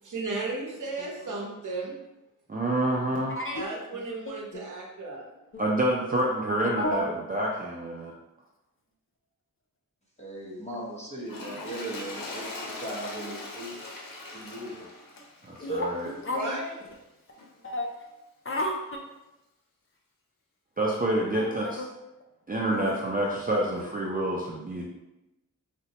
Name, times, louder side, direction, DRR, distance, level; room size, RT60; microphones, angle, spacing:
voice 1, 0.0-2.0 3.5-5.3 16.3-16.7, right 2 dB, 65° right, -1 dB, 0.7 m, -34 dB
voice 2, 2.5-3.4 5.6-8.1 15.4-16.1 20.8-21.8 22.5-24.8, right 1 dB, 25° right, -3 dB, 0.4 m, -28 dB
voice 3, 3.3-3.6 4.5-4.6 6.6-7.1 15.6-16.6 17.6-17.9 18.5-18.8 21.3-21.9 22.7-23.0 23.8-23.9, left 1 dB, 40° left, 0 dB, 0.4 m, -31 dB
voice 4, 10.2-13.7 14.3-14.9, right 1 dB, 20° left, -5 dB, 0.9 m, -38 dB
Toilet flush, 11.2-16.7 17.4-17.5, left 2 dB, 80° left, 0.6 m, -41 dB
4.0 x 2.1 x 2.8 m, 0.97 s
wide cardioid pair, 105°, 33 cm